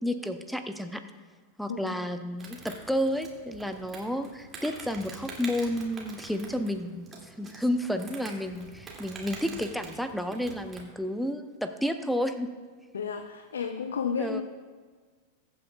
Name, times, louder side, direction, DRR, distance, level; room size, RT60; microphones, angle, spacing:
voice 1, 0.0-1.0 1.6-12.5 14.2-14.4, equal, ahead, 8 dB, 0.6 m, -31 dB
voice 2, 1.7-2.0 12.9-14.4, left 6 dB, 65° left, 7 dB, 0.6 m, -32 dB
Insect, 2.4-10.9, right 3 dB, 20° right, 2.3 m, -45 dB
22.0 x 8.6 x 2.3 m, 1.5 s
figure-of-eight pair, 90°, 0 cm